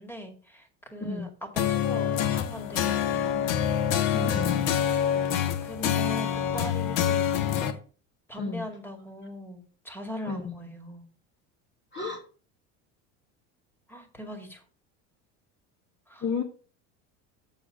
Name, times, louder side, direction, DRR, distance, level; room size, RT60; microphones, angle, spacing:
voice 1, 0.0-3.6 5.6-7.8 8.3-11.0 13.9-14.6 16.1-16.2, left 1 dB, 5° left, 5 dB, 2.2 m, -40 dB
voice 2, 1.0-1.3 4.1-4.6 8.4-8.7 10.3-10.5 11.9-12.2 16.2-16.4, left 4 dB, 30° left, 3 dB, 1.6 m, -32 dB
sound 1, 1.6-7.7, left 9 dB, 80° left, 1.3 m, -26 dB
7.3 x 7.0 x 5.1 m, 0.39 s
supercardioid pair, 115°, 39 cm